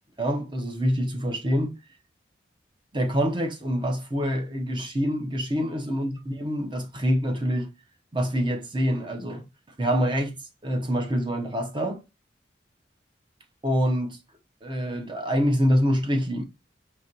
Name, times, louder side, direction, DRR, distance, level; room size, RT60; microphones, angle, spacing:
voice 1, 0.2-1.8 2.9-7.7 8.1-9.4 9.8-10.4 10.6-12.0 13.6-14.2 14.6-16.4, equal, 25° right, 0.8 m, -26 dB
5.0 x 2.9 x 2.6 m
head